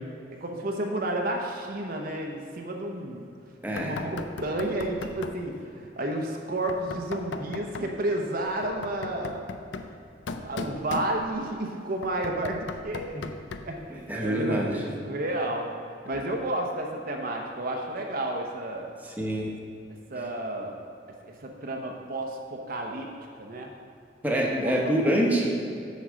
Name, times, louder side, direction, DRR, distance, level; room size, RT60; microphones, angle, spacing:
voice 1, 0.3-3.3 3.7-9.5 10.4-13.3 13.6-15.7 16.0-18.9 19.5-19.6 20.1-20.8 21.3-23.1 23.4-23.7 24.6-24.8, right 1 dB, 50° right, 1 dB, 0.8 m, -31 dB
voice 2, 3.6-4.0 14.1-14.8 19.0-19.5 24.2-25.5, right 1 dB, 10° right, -2 dB, 1.0 m, -25 dB
Knock, 3.8-5.5 6.7-8.0 8.6-11.5 12.0-13.8, left 4 dB, 65° left, 0.5 m, -38 dB
8.1 x 4.6 x 6.2 m, 2.5 s
head